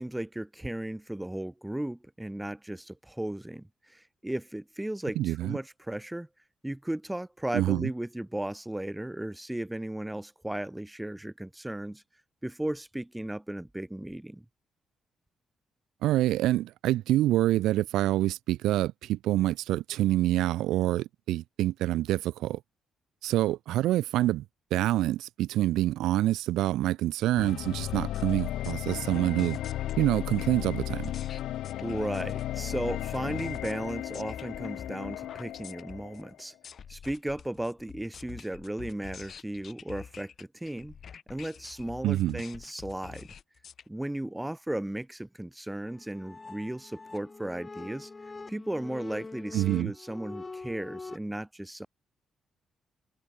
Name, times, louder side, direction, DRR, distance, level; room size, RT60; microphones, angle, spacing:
voice 1, 0.0-6.3 6.6-12.0 12.4-14.4 31.8-36.5 36.9-40.9 41.3-43.3 43.9-48.1 48.5-51.9, right 1 dB, 10° right, 1.0 m, -35 dB
voice 2, 5.2-5.6 7.5-7.9 16.0-22.6 23.2-24.4 24.7-29.6 30.0-31.1 42.0-42.4 49.5-49.9, right 14 dB, 90° right, 0.6 m, -26 dB
sound 1, 27.4-36.4, left 13 dB, 85° left, 0.5 m, -35 dB
sound 2, 27.9-43.8, left 7 dB, 50° left, 7.0 m, -47 dB
sound 3, 45.9-51.2, left 3 dB, 25° left, 6.4 m, -44 dB
cardioid pair, 90°, 0 cm